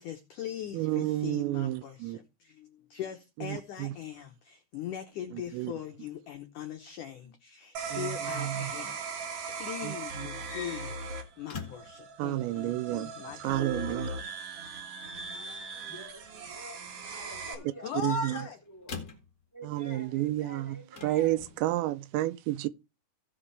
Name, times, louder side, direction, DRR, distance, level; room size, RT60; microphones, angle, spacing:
voice 1, 0.0-9.0 9.5-13.8 17.5-18.6, left 8 dB, 80° left, 1.8 m, -40 dB
voice 2, 0.7-2.2 3.5-3.9 5.5-5.7 7.9-8.7 9.8-9.9 12.2-13.1 13.4-14.1 18.0-18.3 19.7-22.7, right 16 dB, 85° right, 2.8 m, -31 dB
sound 1, 7.7-17.5, right 4 dB, 60° right, 1.6 m, -39 dB
sound 2, 10.3-12.0 13.3-14.0 15.5-15.9 17.7-19.3 20.9-21.6, left 6 dB, 50° left, 1.0 m, -45 dB
voice 3, 15.9-17.9 18.2-18.9 19.5-21.4, equal, 5° left, 1.5 m, -49 dB
17.0 x 6.0 x 3.4 m
omnidirectional pair, 5.1 m